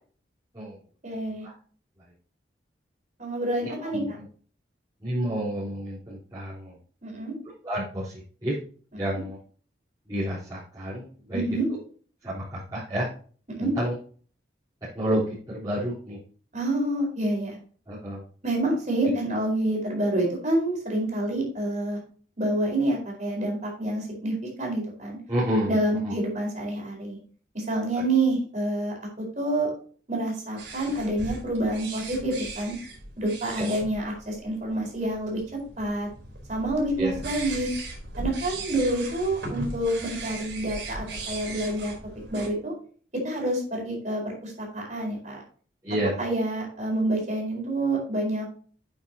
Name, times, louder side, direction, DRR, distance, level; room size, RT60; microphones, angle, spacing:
voice 1, 1.0-1.5 3.2-4.0 7.0-7.3 11.3-11.7 13.6-13.7 16.5-17.6 18.4-22.0 22.4-25.2 25.7-27.2 27.5-29.7 30.1-32.7 33.2-36.1 36.5-37.7 38.2-41.9 42.3-42.7 43.2-45.4 46.2-48.6, right 1 dB, 40° right, -1 dB, 4.5 m, -28 dB
voice 2, 3.6-4.3 5.0-6.8 7.4-8.6 8.9-9.4 10.1-11.4 12.2-13.1 13.6-13.9 14.9-16.2 17.9-18.2 25.3-26.1 27.9-28.0 33.5-33.7 37.0-37.2 45.8-46.2, equal, 20° right, -12 dB, 3.8 m, -30 dB
sound 1, 30.6-42.5, right 2 dB, 80° right, 3.7 m, -38 dB
8.9 x 8.3 x 2.8 m, 0.43 s
head